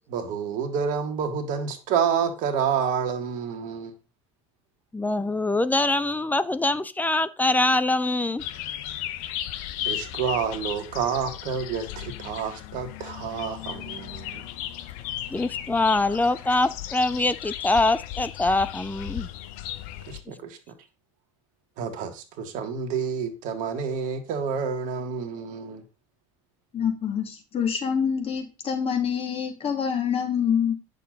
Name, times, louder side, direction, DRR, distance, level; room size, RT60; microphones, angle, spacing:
voice 1, 0.1-3.9 9.8-14.4 20.1-20.6 21.8-25.8, right 7 dB, 55° right, 1.8 m, -29 dB
voice 2, 4.9-8.4 15.3-19.3, left 2 dB, 10° left, 0.5 m, -24 dB
sound 1, 8.4-20.2, left 12 dB, 60° left, 0.9 m, -35 dB
voice 3, 26.7-30.7, left 7 dB, 35° left, 2.6 m, -26 dB
9.5 x 6.7 x 4.0 m
figure-of-eight pair, 65°, 16 cm